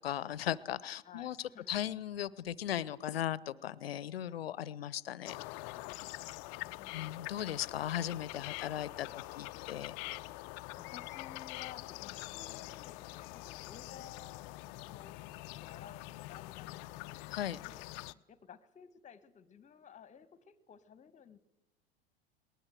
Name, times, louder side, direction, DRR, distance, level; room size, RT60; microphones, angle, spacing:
voice 1, 0.0-1.4 1.7-5.4 6.9-10.0 17.3-17.6, left 11 dB, 70° left, 21 dB, 0.9 m, -37 dB
voice 2, 1.0-1.7 6.0-7.3 10.8-17.2 17.6-21.4, left 8 dB, 25° left, 16 dB, 1.5 m, -55 dB
sound 1, 5.2-18.1, left 20 dB, 45° left, 0.7 m, -45 dB
22.5 x 19.0 x 7.8 m, 0.98 s
figure-of-eight pair, 90°, 31 cm